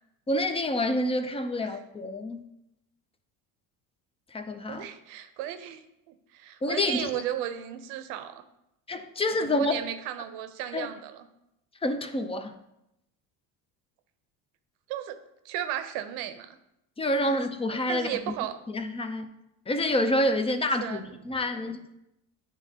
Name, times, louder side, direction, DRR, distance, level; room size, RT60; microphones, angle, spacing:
voice 1, 0.3-2.4 4.3-4.9 6.6-7.2 8.9-9.7 10.7-10.9 11.8-12.5 17.0-18.2 18.7-19.3 19.7-21.8, left 1 dB, 15° left, 8 dB, 0.5 m, -28 dB
voice 2, 4.7-8.4 9.4-11.3 14.9-15.2 15.4-16.6 17.2-17.3 17.7-18.6 20.8-21.2, right 11 dB, 80° right, 9 dB, 0.7 m, -35 dB
9.9 x 3.5 x 2.8 m, 0.85 s
supercardioid pair, 90°, 44 cm